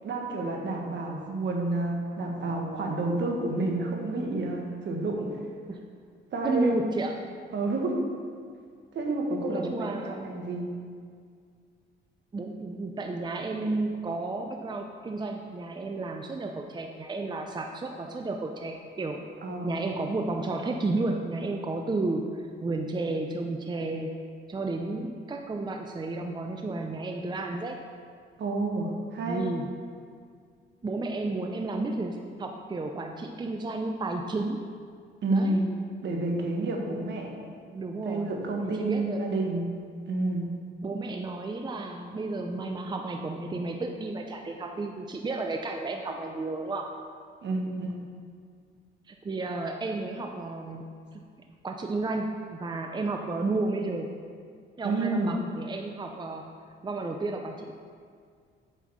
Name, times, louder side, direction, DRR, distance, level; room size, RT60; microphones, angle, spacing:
voice 1, 0.0-5.3 6.3-6.7 7.5-8.0 8.9-10.7 19.4-19.7 28.4-29.5 35.2-35.7 36.0-37.4 38.0-39.6 40.1-40.5 47.4-47.9 54.8-55.3, right 2 dB, 65° right, 0 dB, 1.6 m, -29 dB
voice 2, 6.4-7.4 9.5-10.4 12.3-19.3 19.6-24.2 24.5-27.8 29.3-29.7 30.8-34.6 35.3-35.6 37.7-38.3 38.6-39.3 40.8-47.0 49.1-51.2 51.6-54.1 54.8-56.5 56.8-57.7, right 2 dB, 20° right, 3 dB, 0.6 m, -32 dB
8.1 x 5.6 x 6.3 m, 2.1 s
cardioid pair, 90°, 20 cm